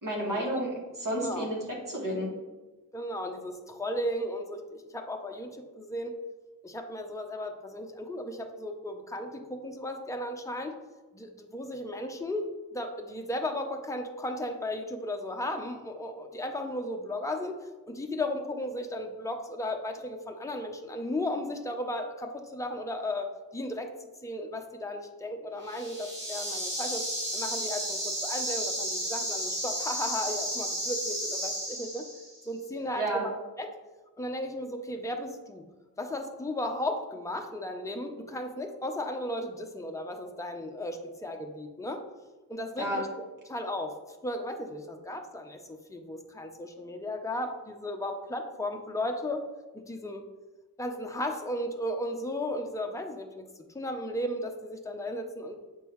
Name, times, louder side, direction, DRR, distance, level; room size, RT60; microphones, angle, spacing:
voice 1, 0.0-1.6 1.9-2.3 32.9-33.2 42.8-43.0, right 1 dB, 60° right, -4 dB, 1.8 m, -31 dB
voice 2, 1.1-1.5 2.9-6.2 6.6-10.8 11.1-27.0 27.3-32.0 32.4-33.3 33.6-33.7 34.2-35.6 36.0-42.0 42.5-43.1 43.5-44.0 44.2-49.5 49.7-50.3 50.8-55.7, left 1 dB, 10° left, 4 dB, 0.6 m, -35 dB
sound 1, 25.6-32.4, equal, 30° right, 2.3 m, -33 dB
8.0 x 5.3 x 3.1 m, 1.2 s
wide cardioid pair, 85°, 36 cm